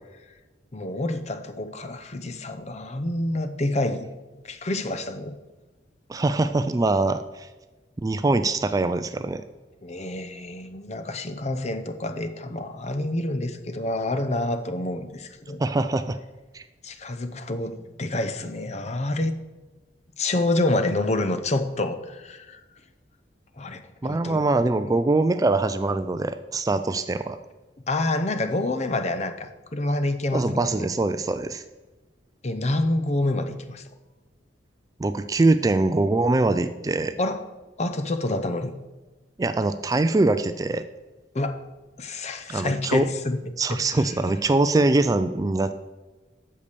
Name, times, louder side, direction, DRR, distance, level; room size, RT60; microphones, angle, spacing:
voice 1, 0.7-4.1 4.4-5.4 9.8-15.6 16.8-19.3 20.2-22.6 23.6-24.4 24.9-25.0 27.9-30.9 32.4-33.9 37.2-37.4 37.8-38.7 41.3-41.6 42.0-43.4 43.7-44.1, left 2 dB, 40° left, 9 dB, 0.7 m, -28 dB
voice 2, 6.1-7.5 8.0-9.4 15.6-16.2 16.5-16.6 24.0-27.4 30.3-31.6 35.0-37.1 39.4-40.8 42.5-43.1 43.6-45.7, right 2 dB, 20° right, 11 dB, 0.3 m, -23 dB
8.4 x 6.7 x 6.8 m, 1.2 s
head